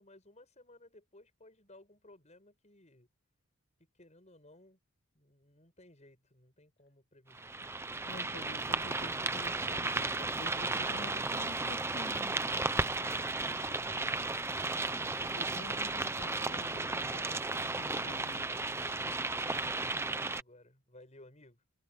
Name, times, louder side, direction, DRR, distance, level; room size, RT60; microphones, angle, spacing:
voice 1, 0.0-3.1 3.9-4.8 5.1-7.5 12.5-14.6 18.7-21.6, left 1 dB, 30° left, 7.9 m, -58 dB
sound 1, 7.3-20.4, right 3 dB, 10° right, 0.6 m, -34 dB
voice 2, 8.1-12.4 15.2-18.5, left 1 dB, 50° left, 2.6 m, -49 dB
head